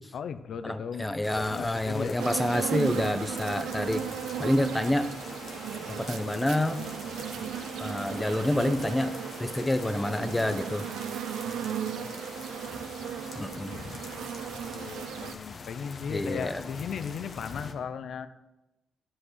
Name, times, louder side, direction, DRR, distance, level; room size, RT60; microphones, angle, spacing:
voice 1, 0.1-1.1 1.3-2.1 11.4-12.2 14.7-18.3, left 7 dB, 70° left, 11 dB, 0.7 m, -37 dB
voice 2, 0.6-4.1 4.4-5.1 5.9-6.8 7.8-10.9 13.3-13.7 16.1-16.6, left 1 dB, 10° left, 11 dB, 0.9 m, -28 dB
sound 1, 1.2-17.7, left 4 dB, 50° left, 1.3 m, -43 dB
sound 2, 2.2-15.3, right 9 dB, 90° right, 0.5 m, -36 dB
9.9 x 7.8 x 6.3 m, 0.98 s
cardioid pair, 80°, 0 cm